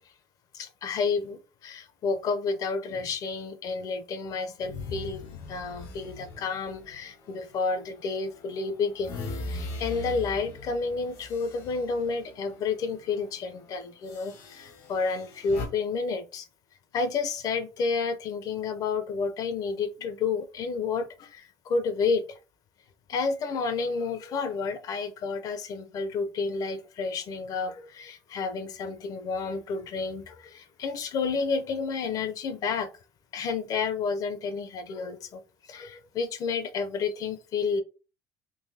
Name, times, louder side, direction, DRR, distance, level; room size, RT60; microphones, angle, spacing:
voice 1, 0.5-9.2 9.5-16.5 16.9-22.4 23.1-32.9 33.3-35.4 35.7-37.8, left 4 dB, 55° left, 0.6 m, -30 dB
sound 1, 4.6-7.9 8.4-12.7 13.0-13.3 14.1-15.7, left 2 dB, 80° left, 1.1 m, -40 dB
3.8 x 2.6 x 2.7 m
cardioid pair, 105°, 8 cm